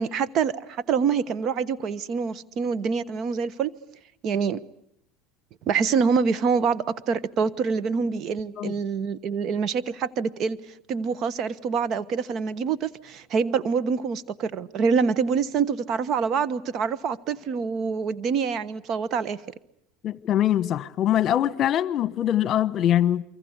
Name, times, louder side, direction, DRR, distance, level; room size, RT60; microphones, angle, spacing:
voice 1, 0.0-3.7 4.2-4.6 5.7-10.6 10.9-19.4, right 5 dB, 50° right, 1.2 m, -26 dB
voice 2, 20.0-23.2, left 11 dB, 45° left, 1.2 m, -23 dB
28.5 x 24.5 x 8.2 m
supercardioid pair, 105°, 0 cm